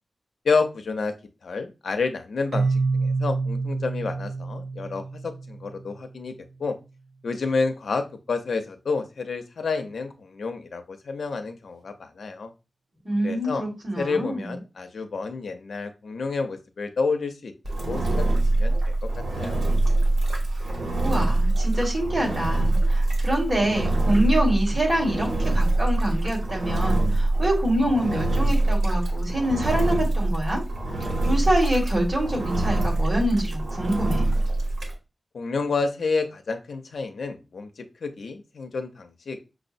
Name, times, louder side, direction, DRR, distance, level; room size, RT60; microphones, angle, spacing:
voice 1, 0.4-1.1 1.4-6.3 6.6-6.7 7.2-12.5 13.2-13.6 14.0-17.5 17.9-18.3 18.6-18.8 19.4-19.7 35.3-39.5, left 4 dB, 85° left, 6 dB, 0.5 m, -29 dB
Keyboard (musical), 2.5-6.2, right 4 dB, 65° right, 0.3 m, -28 dB
voice 2, 13.0-14.5 20.7-30.6 31.2-34.3, right 1 dB, 40° right, -2 dB, 1.8 m, -26 dB
Engine, 17.6-34.9, right 2 dB, 80° right, 1.1 m, -24 dB
6.0 x 2.0 x 2.6 m, 0.28 s
wide cardioid pair, 95°, 0 cm